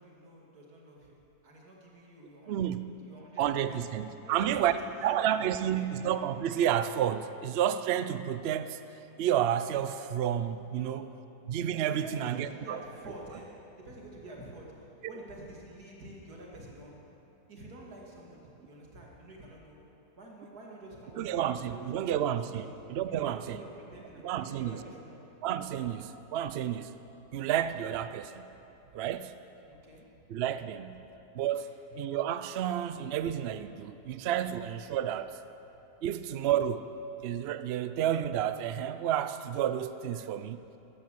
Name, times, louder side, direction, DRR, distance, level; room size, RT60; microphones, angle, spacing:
voice 1, 0.0-6.0 10.7-11.1 11.9-17.1 17.5-19.9 20.2-22.2 22.5-22.7 23.2-25.2 29.7-30.2 31.5-31.8, right 1 dB, 65° right, -2 dB, 2.8 m, -49 dB
voice 2, 2.5-2.9 3.4-4.7 5.0-8.8 9.2-11.1 11.5-12.8 21.2-23.6 24.2-24.8 25.4-26.9 27.3-28.5 28.9-29.3 30.3-31.0 31.3-31.7 31.9-35.4 36.0-36.9 37.2-40.6, right 10 dB, 85° right, 12 dB, 0.5 m, -30 dB
14.0 x 11.5 x 7.7 m, 2.9 s
omnidirectional pair, 1.8 m